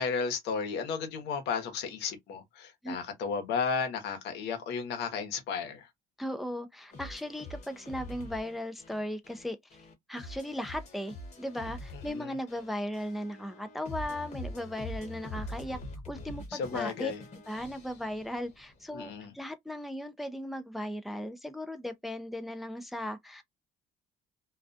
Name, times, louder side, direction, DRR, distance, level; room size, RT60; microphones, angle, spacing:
voice 1, 0.0-5.9 12.1-12.3 16.5-17.2 18.9-19.3, left 5 dB, 85° left, 0.9 m, -33 dB
voice 2, 6.2-9.6 10.1-15.8 16.1-17.1 17.5-23.4, equal, ahead, 0.4 m, -37 dB
sound 1, 6.9-18.9, left 1 dB, 45° left, 1.0 m, -44 dB
2.4 x 2.2 x 2.5 m
cardioid pair, 110°, 17 cm